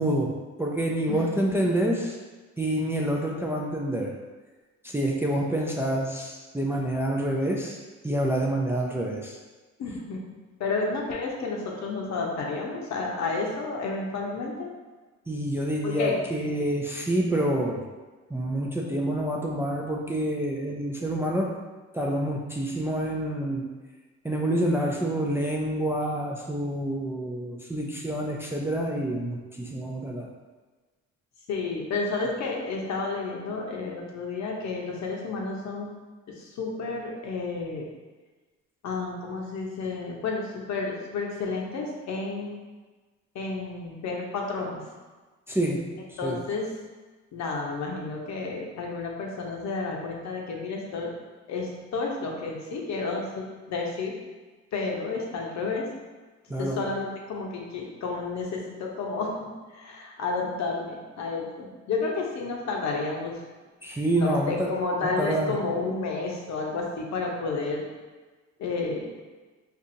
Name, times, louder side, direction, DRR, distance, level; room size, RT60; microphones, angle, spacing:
voice 1, 0.0-2.2 2.6-4.2 4.8-7.8 8.0-9.4 15.3-17.9 18.3-21.6 21.9-23.7 24.2-30.3 45.5-46.4 56.5-56.8 63.8-64.7 65.0-65.6, right 1 dB, 10° right, -1 dB, 0.4 m, -27 dB
voice 2, 9.8-10.2 10.6-14.7 15.8-16.1 31.5-35.9 36.3-37.8 38.8-42.6 43.3-44.8 46.2-46.7 47.3-51.1 51.5-54.1 54.7-55.9 56.6-63.4 64.1-67.8 68.6-69.1, left 3 dB, 65° left, -1 dB, 0.8 m, -31 dB
4.2 x 2.6 x 2.6 m, 1.3 s
cardioid pair, 90°, 30 cm